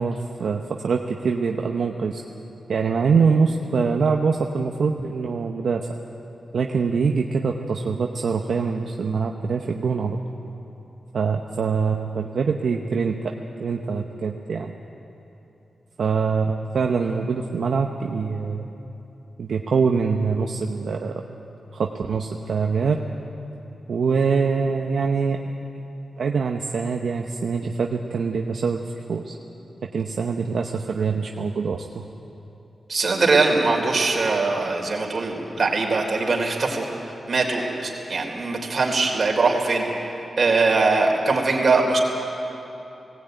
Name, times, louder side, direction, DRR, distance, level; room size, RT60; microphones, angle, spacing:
voice 1, 0.0-2.2 2.7-5.9 6.5-10.2 11.1-13.2 13.6-14.7 16.0-18.6 19.4-21.2 21.7-23.0 23.9-25.5 26.2-28.8 29.1-29.4 29.9-32.0, right 5 dB, 75° right, 2 dB, 0.9 m, -24 dB
voice 2, 32.9-36.9 37.3-39.8 40.4-42.0, right 3 dB, 50° right, 1 dB, 3.6 m, -21 dB
18.5 x 17.5 x 9.1 m, 3.0 s
wide cardioid pair, 95°, 0 cm